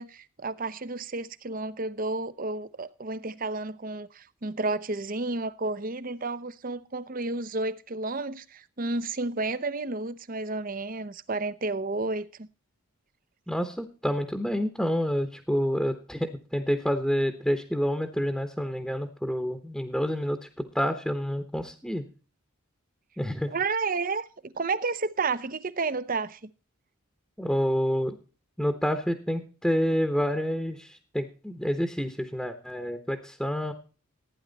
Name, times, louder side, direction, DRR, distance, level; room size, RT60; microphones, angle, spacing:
voice 1, 0.0-12.5 23.5-26.5, right 3 dB, 40° right, 0.7 m, -31 dB
voice 2, 13.5-20.4 20.7-22.0 23.2-23.5 27.4-28.2 28.6-33.7, equal, ahead, 1.0 m, -28 dB
15.5 x 9.6 x 4.0 m
head